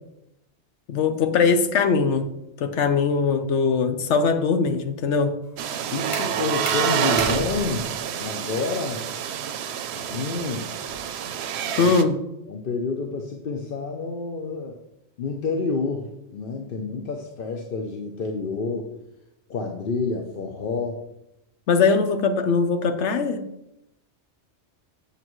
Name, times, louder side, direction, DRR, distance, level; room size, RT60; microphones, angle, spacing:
voice 1, 0.9-2.3 2.6-5.4 11.8-12.2 21.7-23.5, left 5 dB, 80° left, 8 dB, 1.0 m, -21 dB
sound 1, 5.4-11.2, equal, 15° left, 1.2 m, -38 dB
sound 2, 5.6-12.0, right 9 dB, 70° right, 0.8 m, -28 dB
voice 2, 5.9-7.9 8.2-9.1 9.9-10.7 11.6-11.9 12.5-14.8 15.2-18.9 19.5-21.0, left 4 dB, 55° left, 3 dB, 0.8 m, -29 dB
8.4 x 6.7 x 3.1 m, 0.85 s
omnidirectional pair, 1.2 m